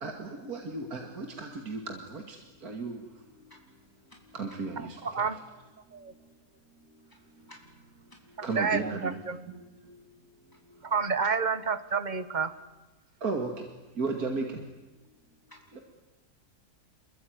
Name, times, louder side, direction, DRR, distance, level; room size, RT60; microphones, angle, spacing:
voice 1, 0.0-2.4 2.6-3.0 4.3-5.0 8.4-9.2 9.5-9.6 13.2-13.5 14.0-14.5, right 3 dB, 75° right, 4 dB, 2.7 m, -34 dB
voice 2, 3.5-4.4 7.1-7.8 8.1-8.2 10.5-10.7 15.5-15.8, left 1 dB, 15° left, 1 dB, 4.9 m, -57 dB
voice 3, 4.8-5.4 5.9-6.1 8.4-9.4 10.8-12.5, right 5 dB, 30° right, 13 dB, 1.3 m, -30 dB
27.5 x 23.0 x 9.5 m, 1.1 s
omnidirectional pair, 1.6 m